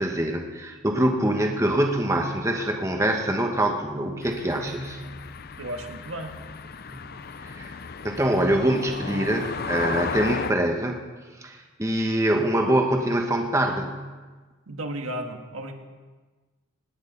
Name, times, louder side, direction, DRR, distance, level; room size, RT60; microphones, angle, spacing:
voice 1, 0.0-5.0 6.9-7.1 7.5-7.7 8.0-11.0 11.4-13.9, right 1 dB, 15° right, 3 dB, 1.2 m, -24 dB
sound 1, 4.2-10.5, left 5 dB, 45° left, 0.6 m, -35 dB
voice 2, 5.6-6.3 14.7-15.7, right 1 dB, 85° right, 4 dB, 1.7 m, -34 dB
18.0 x 6.6 x 9.5 m, 1.3 s
head